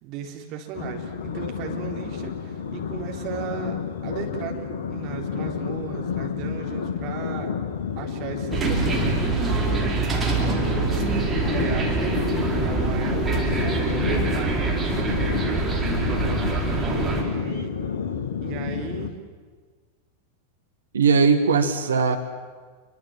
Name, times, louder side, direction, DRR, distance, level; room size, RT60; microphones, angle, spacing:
voice 1, 0.0-7.5 8.0-9.7 10.0-12.1 12.6-15.8 16.6-17.7 18.4-19.1, right 9 dB, 40° right, 2 dB, 4.0 m, -36 dB
sound 1, 0.7-19.1, left 7 dB, 60° left, 1.7 m, -30 dB
sound 2, 8.5-17.2, right 3 dB, 15° right, 4.7 m, -25 dB
voice 2, 20.9-22.2, right 5 dB, 70° right, 7 dB, 2.0 m, -19 dB
28.0 x 23.5 x 7.8 m, 1.5 s
figure-of-eight pair, 90°, 0 cm